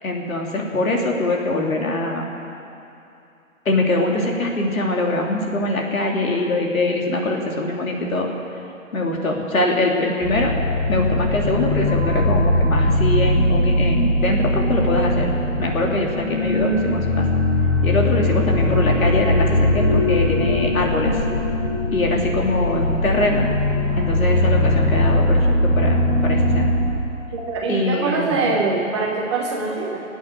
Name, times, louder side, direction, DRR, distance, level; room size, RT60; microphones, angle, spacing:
voice 1, 0.0-2.3 3.6-8.3 8.9-10.5 10.9-17.2 17.8-21.1 21.9-23.5 24.0-26.7 27.7-28.6, left 2 dB, 80° left, 0 dB, 3.1 m, -23 dB
sound 1, 10.2-26.9, left 1 dB, 30° left, 4.0 m, -20 dB
voice 2, 27.3-30.0, right 3 dB, 20° right, -1 dB, 1.3 m, -23 dB
22.0 x 8.7 x 6.8 m, 2.7 s
hypercardioid pair, 165°, 41 cm